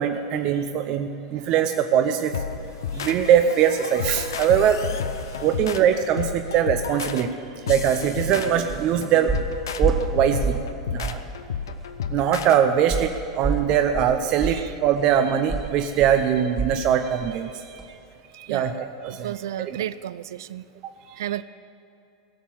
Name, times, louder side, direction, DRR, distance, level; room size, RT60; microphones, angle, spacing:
voice 1, 0.0-2.3 2.9-4.8 5.4-7.3 7.7-9.3 9.8-10.6 10.9-11.2 12.1-17.8 18.3-19.3 19.7-19.8 21.1-21.2, right 9 dB, 45° right, 7 dB, 0.7 m, -22 dB
sound 1, 2.3-12.6, left 7 dB, 70° left, 0.7 m, -32 dB
sound 2, 8.1-8.3 8.7-8.9 9.3-10.7 11.0-11.3 11.7-11.8 12.9-16.9 17.2-17.4 17.8-17.9, right 4 dB, 10° right, 1.6 m, -29 dB
voice 2, 19.2-20.6 21.2-21.4, right 12 dB, 65° right, 16 dB, 0.3 m, -32 dB
17.5 x 7.3 x 8.8 m, 2.7 s
figure-of-eight pair, 85°, 2 cm